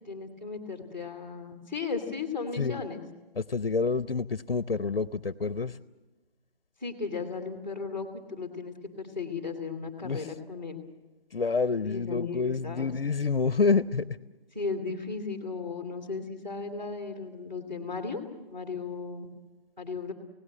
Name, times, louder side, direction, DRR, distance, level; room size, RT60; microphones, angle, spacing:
voice 1, 0.1-3.0 6.8-10.8 11.8-12.9 14.5-18.2 18.5-19.3 19.8-20.1, left 4 dB, 10° right, -6 dB, 1.7 m, -35 dB
voice 2, 3.4-5.8 10.0-10.3 11.3-14.0, left 4 dB, 65° left, 15 dB, 0.7 m, -28 dB
27.0 x 17.5 x 7.5 m, 1.1 s
figure-of-eight pair, 165°, 30 cm